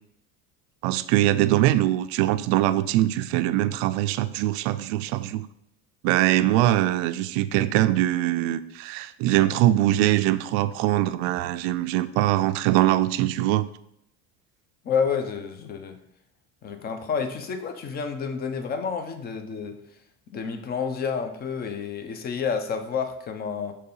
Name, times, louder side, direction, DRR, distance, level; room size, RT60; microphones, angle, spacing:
voice 1, 0.8-5.5 6.0-13.7, right 14 dB, 85° right, 13 dB, 0.5 m, -22 dB
voice 2, 14.8-16.0 16.6-19.8 20.3-23.8, left 6 dB, 25° left, 6 dB, 0.6 m, -29 dB
6.5 x 3.3 x 5.5 m, 0.76 s
cardioid pair, 160°, 35 cm